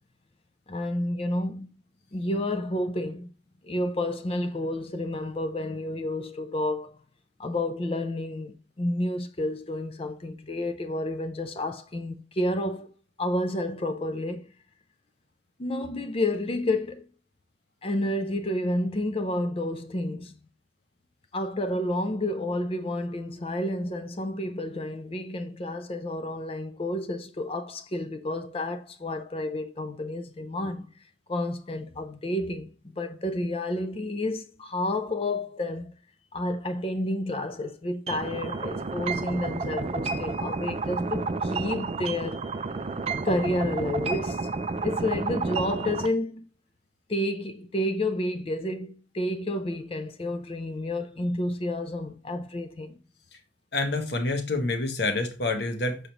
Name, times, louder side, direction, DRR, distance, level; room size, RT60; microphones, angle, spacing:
voice 1, 0.7-1.7 2.1-3.3 3.6-7.0 7.4-12.9 13.2-14.4 15.6-17.1 17.8-20.3 21.3-30.9 31.3-32.7 33.0-35.9 36.3-42.5 43.2-44.5 44.8-46.5 47.1-53.0, left 1 dB, 30° left, 0.5 m, -30 dB
sound 1, 38.1-46.1, right 3 dB, 30° right, 0.3 m, -31 dB
voice 2, 53.7-56.0, left 2 dB, 60° left, 1.1 m, -27 dB
6.5 x 5.0 x 2.9 m
head